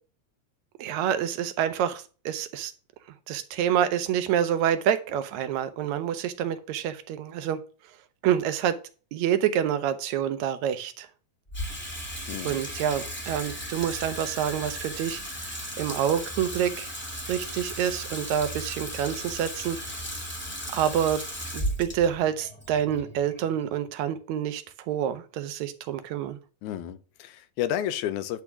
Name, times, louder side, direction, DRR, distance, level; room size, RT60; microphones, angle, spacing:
voice 1, 0.8-2.7 3.3-7.6 8.2-8.8 9.1-11.1 12.5-15.2 15.8-16.9 17.3-19.8 20.7-21.2 21.5-26.4, right 9 dB, 80° right, 2.0 m, -27 dB
Water tap faucet / Sink (filling or washing), 11.5-23.9, equal, 5° left, 1.5 m, -36 dB
voice 2, 12.3-12.7 26.6-28.4, left 11 dB, 85° left, 2.1 m, -31 dB
10.5 x 3.5 x 5.9 m
omnidirectional pair, 3.4 m